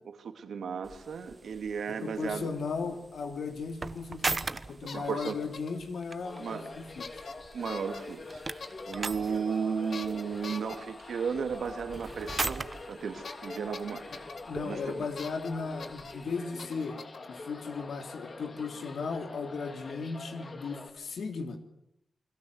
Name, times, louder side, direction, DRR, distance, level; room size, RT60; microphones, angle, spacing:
voice 1, 0.0-2.5 4.8-5.3 6.4-6.7 7.5-14.0 14.6-15.1, right 6 dB, 85° right, 7 dB, 2.8 m, -35 dB
sound 1, 0.8-16.4, right 3 dB, 30° right, 1.2 m, -41 dB
voice 2, 1.9-7.0 14.5-17.0 17.3-21.6, left 4 dB, 85° left, 6 dB, 3.0 m, -36 dB
sound 2, 4.5-4.6 4.9-5.8 7.0-7.3 7.6-8.0 8.6-8.9 9.9-10.8 12.3-12.4 12.7-12.8 13.2-14.4 15.2-15.5 15.8-16.1 16.6-17.3, left 4 dB, 60° left, 2.7 m, -43 dB
sound 3, 6.2-20.9, left 3 dB, 45° left, 3.4 m, -45 dB
29.0 x 22.0 x 8.2 m, 0.76 s
wide cardioid pair, 105°, 0 cm